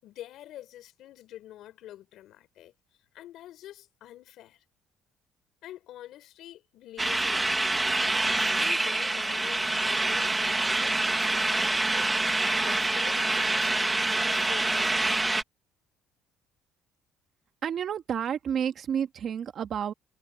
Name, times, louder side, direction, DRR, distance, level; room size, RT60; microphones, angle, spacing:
voice 1, 0.0-2.7 3.1-4.6 5.6-7.8 8.4-12.1 12.5-15.2, left 13 dB, 70° left, 5.4 m, -46 dB
sound 1, 7.0-15.4, right 2 dB, 15° right, 1.7 m, -26 dB
voice 2, 17.6-19.9, right 8 dB, 50° right, 1.9 m, -30 dB
cardioid pair, 120°, 0 cm